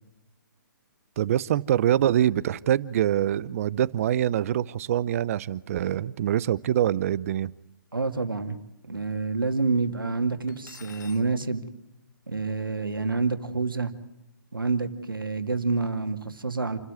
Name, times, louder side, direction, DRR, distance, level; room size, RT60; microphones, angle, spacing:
voice 1, 1.2-7.5, right 11 dB, 45° right, 19 dB, 0.8 m, -24 dB
voice 2, 7.9-8.6 8.8-11.6 12.3-13.9 14.5-16.8, right 4 dB, 90° right, 7 dB, 2.3 m, -28 dB
Cutlery silverware, 10.5-11.3, left 7 dB, 60° left, 1.4 m, -48 dB
28.5 x 13.0 x 9.7 m, 0.94 s
figure-of-eight pair, 135°, 11 cm